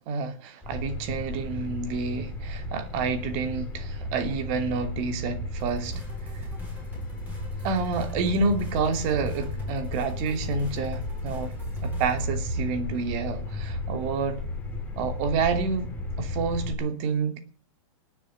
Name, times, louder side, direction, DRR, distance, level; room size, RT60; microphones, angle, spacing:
voice 1, 0.0-6.0 6.3-6.4 7.6-11.5 11.8-14.4 14.9-17.4, right 4 dB, 40° right, 2.9 m, -29 dB
sound 1, 0.6-16.7, left 1 dB, 10° left, 3.3 m, -34 dB
sound 2, 5.6-12.3, left 1 dB, 10° right, 7.5 m, -42 dB
19.0 x 7.2 x 7.4 m
supercardioid pair, 150°, 17 cm